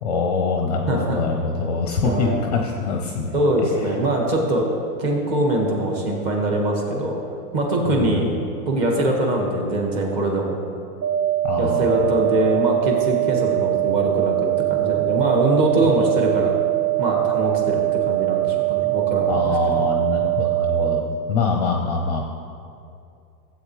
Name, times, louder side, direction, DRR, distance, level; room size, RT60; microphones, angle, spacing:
voice 1, 0.0-3.9 7.9-8.3 11.4-12.1 15.8-15.9 19.3-22.2, left 4 dB, 25° left, 2 dB, 0.6 m, -24 dB
voice 2, 0.9-1.2 2.0-2.4 3.3-4.6 5.0-7.1 7.5-8.2 8.7-10.5 11.6-16.5 17.0-19.8, right 1 dB, 30° right, 0 dB, 1.6 m, -22 dB
sound 1, 11.0-21.0, right 22 dB, 80° right, 1.1 m, -22 dB
15.5 x 8.0 x 3.2 m, 2.5 s
hypercardioid pair, 165°, 47 cm